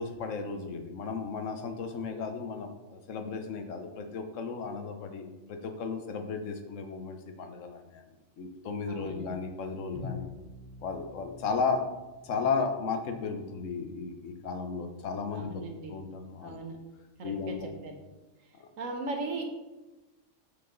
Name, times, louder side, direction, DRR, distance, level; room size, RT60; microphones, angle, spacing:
voice 1, 0.0-8.0 8.4-10.3 10.8-11.9 12.2-15.6 15.9-16.6 17.2-17.7 18.6-18.7, left 5 dB, 75° left, 6 dB, 1.2 m, -34 dB
voice 2, 8.9-9.3 15.3-15.9 16.4-16.8 17.2-17.6 17.8-17.9 18.8-19.4, right 3 dB, 80° right, 3 dB, 1.5 m, -37 dB
Bowed string instrument, 9.9-12.8, left 5 dB, 30° left, 1.6 m, -45 dB
7.9 x 5.2 x 3.9 m, 1.1 s
omnidirectional pair, 1.3 m